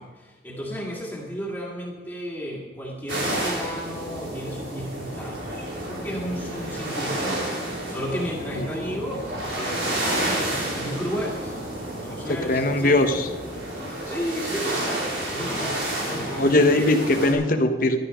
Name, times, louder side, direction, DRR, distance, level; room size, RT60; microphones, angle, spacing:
voice 1, 0.0-11.6 11.9-13.0 14.0-16.5 16.7-17.2, equal, 10° left, -4 dB, 2.1 m, -33 dB
sound 1, 3.1-17.3, right 1 dB, 85° right, 4.4 m, -30 dB
voice 2, 12.3-13.3 16.4-18.0, left 2 dB, 50° left, 6 dB, 1.1 m, -20 dB
13.0 x 12.0 x 5.1 m, 1.3 s
head